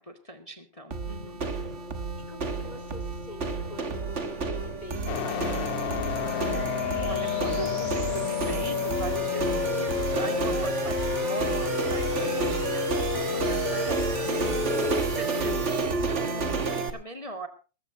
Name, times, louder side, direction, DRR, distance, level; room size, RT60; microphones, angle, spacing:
voice 1, 0.0-1.4 7.0-17.5, right 1 dB, 30° left, 6 dB, 0.6 m, -40 dB
sound 1, 0.9-16.9, right 3 dB, 65° right, 0.7 m, -30 dB
voice 2, 2.3-6.5, left 1 dB, 10° left, 6 dB, 4.0 m, -47 dB
sound 2, 2.3-15.8, right 2 dB, 85° right, 7.9 m, -41 dB
sound 3, 5.1-15.0, left 10 dB, 80° left, 1.3 m, -31 dB
20.0 x 16.0 x 2.8 m, 0.34 s
omnidirectional pair, 3.8 m